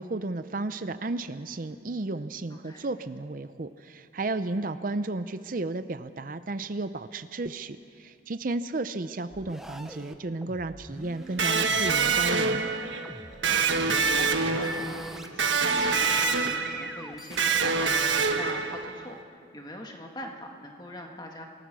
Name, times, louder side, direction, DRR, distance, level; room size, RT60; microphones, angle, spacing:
voice 1, 0.0-12.6, right 2 dB, 45° right, 11 dB, 0.6 m, -33 dB
voice 2, 2.5-2.9 4.5-4.7 13.5-21.4, left 1 dB, 20° left, 2 dB, 1.8 m, -43 dB
sound 1, 9.3-12.7 13.0-15.3 15.6-17.7, equal, ahead, 0.9 m, -45 dB
Electric guitar, 11.4-19.1, right 4 dB, 85° right, 1.3 m, -26 dB
28.0 x 18.5 x 6.2 m, 2.4 s
head